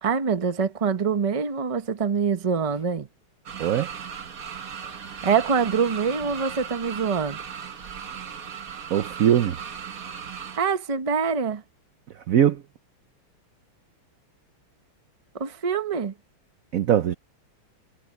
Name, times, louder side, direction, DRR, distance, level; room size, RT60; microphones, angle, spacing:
voice 1, 0.0-3.1 5.2-7.4 10.6-11.6 15.3-16.1, right 6 dB, 30° right, 0.7 m, -25 dB
sound 1, 3.5-10.6, right 7 dB, 45° right, 1.5 m, -37 dB
voice 2, 3.6-3.9 8.9-9.6 12.3-12.6 16.7-17.1, right 10 dB, 70° right, 0.8 m, -21 dB
omnidirectional pair, 2.3 m